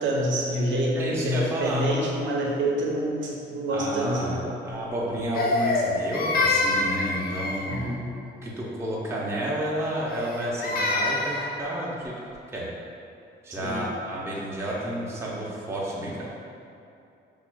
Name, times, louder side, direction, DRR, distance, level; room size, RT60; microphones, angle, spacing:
voice 1, 0.0-4.4 7.7-8.1 13.6-13.8, right 1 dB, 70° right, -2 dB, 0.7 m, -27 dB
voice 2, 0.9-1.8 3.7-4.4 4.6-8.0 8.4-12.1 12.5-12.7 13.4-16.3, right 1 dB, 15° right, -5 dB, 0.5 m, -31 dB
Crying sobbing, 5.4-7.9 10.1-11.5, left 2 dB, 50° left, 0.5 m, -26 dB
5.6 x 2.4 x 2.2 m, 2.6 s
cardioid pair, 90°, 20 cm